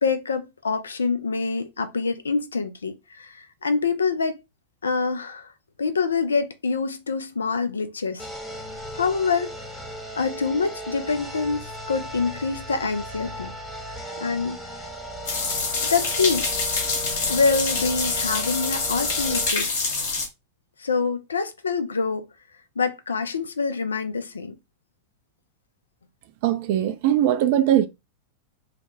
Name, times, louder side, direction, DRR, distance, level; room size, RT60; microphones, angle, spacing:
voice 1, 0.0-4.4 4.8-5.5 5.8-8.3 8.9-9.5 10.2-13.5 14.2-14.6 15.8-16.5 17.3-19.8 20.8-22.2 22.8-24.6, left 4 dB, 75° left, 0.3 m, -25 dB
sound 1, 8.2-19.5, equal, 5° left, 0.8 m, -37 dB
sound 2, 15.2-20.3, left 4 dB, 55° left, 0.9 m, -26 dB
voice 2, 26.4-27.9, right 11 dB, 50° right, 0.3 m, -20 dB
2.7 x 2.1 x 3.0 m
figure-of-eight pair, 90°, 0 cm